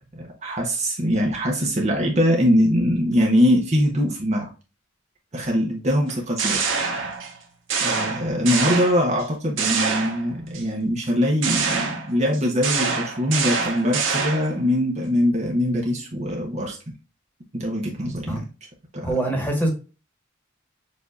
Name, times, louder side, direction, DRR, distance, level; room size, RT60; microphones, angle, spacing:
voice 1, 0.1-4.5 5.3-6.6 7.8-16.8 17.5-18.4 18.9-19.2, equal, 35° right, 0 dB, 0.9 m, -22 dB
sound 1, 6.1-7.4 7.7-9.2 9.6-10.6 11.4-14.6, right 5 dB, 70° right, 1.1 m, -25 dB
voice 2, 18.1-18.4 19.0-19.7, right 1 dB, 10° left, 0 dB, 1.4 m, -24 dB
6.7 x 2.7 x 2.4 m, 0.33 s
head